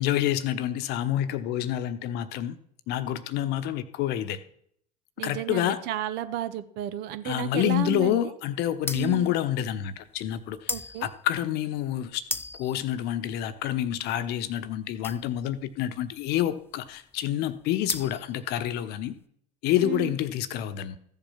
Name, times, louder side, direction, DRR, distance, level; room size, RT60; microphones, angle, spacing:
voice 1, 0.0-2.6 2.9-4.4 5.2-5.8 7.2-10.7 11.0-12.3 12.6-19.2 19.6-21.0, left 12 dB, 55° left, 12 dB, 1.0 m, -28 dB
voice 2, 5.2-8.3 8.9-9.3 10.7-11.1 19.8-20.2, right 12 dB, 55° right, 12 dB, 1.2 m, -33 dB
sound 1, 8.8-19.1, left 3 dB, 10° left, 0.7 m, -38 dB
14.5 x 7.3 x 5.8 m, 0.69 s
figure-of-eight pair, 70°, 20 cm